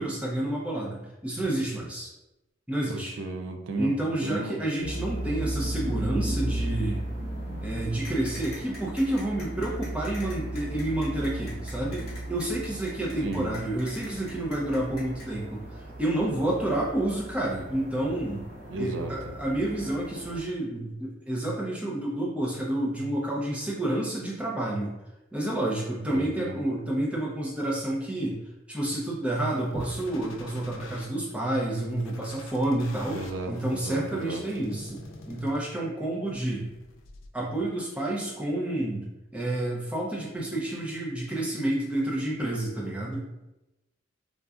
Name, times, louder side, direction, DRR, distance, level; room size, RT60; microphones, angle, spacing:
voice 1, 0.0-2.1 2.7-3.1 3.8-7.0 7.6-12.0 12.3-15.6 16.0-18.5 18.8-24.9 25.3-28.4 28.7-33.2 33.5-35.0 35.3-36.7 37.3-39.0 39.3-43.3, right 1 dB, 5° right, -4 dB, 0.5 m, -29 dB
voice 2, 2.9-4.6 13.2-13.5 18.7-19.3 26.1-26.6 33.1-34.4, right 2 dB, 70° right, 4 dB, 0.4 m, -34 dB
sound 1, 4.8-20.4, right 1 dB, 45° right, 0.8 m, -36 dB
sound 2, 8.0-15.3, left 2 dB, 50° left, 1.0 m, -45 dB
sound 3, 29.3-31.1 31.8-35.8 36.3-37.3, left 2 dB, 75° left, 0.4 m, -47 dB
3.7 x 2.2 x 2.4 m, 0.95 s
head